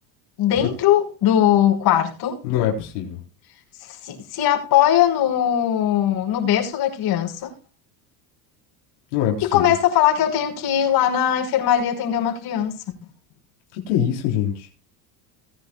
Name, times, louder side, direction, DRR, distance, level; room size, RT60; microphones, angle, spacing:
voice 1, 0.4-2.4 3.8-7.5 9.4-12.8, left 11 dB, 55° left, 5.8 m, -20 dB
voice 2, 2.4-3.2 9.1-9.6 13.7-14.7, left 10 dB, 85° left, 4.1 m, -23 dB
20.0 x 10.5 x 2.4 m
cardioid pair, 130°, 45 cm